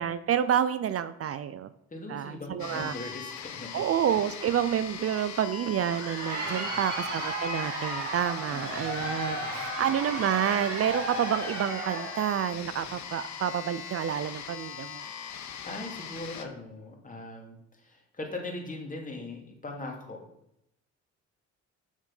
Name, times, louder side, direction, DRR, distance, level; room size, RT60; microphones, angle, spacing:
voice 1, 0.0-1.7 2.1-2.9 3.7-15.1, right 9 dB, 50° right, 13 dB, 0.5 m, -29 dB
voice 2, 1.9-3.8 6.4-6.8 8.5-9.7 15.6-20.2, left 2 dB, 25° left, 1 dB, 2.5 m, -40 dB
sound 1, 2.6-16.5, left 8 dB, 65° left, 1.1 m, -41 dB
Crowd, 5.7-12.3, right 2 dB, 90° right, 3.5 m, -34 dB
7.5 x 6.3 x 5.4 m, 0.78 s
cardioid pair, 90°, 30 cm